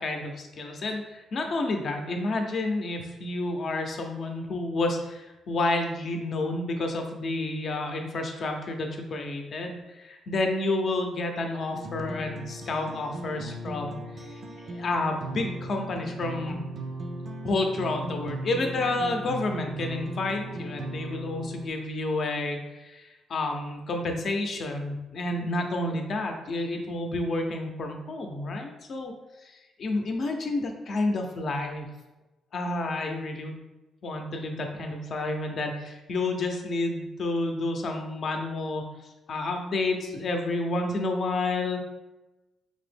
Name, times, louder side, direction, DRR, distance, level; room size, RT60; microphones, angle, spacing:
voice 1, 0.0-14.0 14.6-16.6 17.4-29.1 29.4-29.5 29.8-31.9 32.5-33.5 34.0-38.8 39.3-41.8, left 2 dB, 55° left, 3 dB, 0.6 m, -30 dB
sound 1, 11.7-21.7, right 1 dB, 55° right, 0.5 m, -37 dB
5.1 x 2.0 x 3.3 m, 1.1 s
cardioid pair, 90°, 0 cm